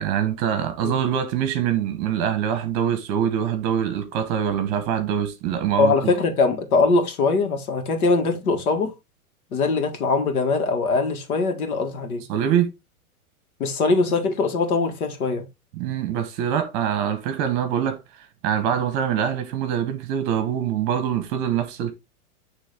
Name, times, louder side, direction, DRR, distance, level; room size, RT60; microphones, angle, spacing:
voice 1, 0.0-6.1 12.3-12.7 15.8-18.0 18.4-21.9, right 9 dB, 35° right, 1.1 m, -24 dB
voice 2, 5.8-8.9 9.5-12.2 13.6-15.4, left 3 dB, 75° left, 2.0 m, -22 dB
9.1 x 3.4 x 3.5 m
supercardioid pair, 155°, 44 cm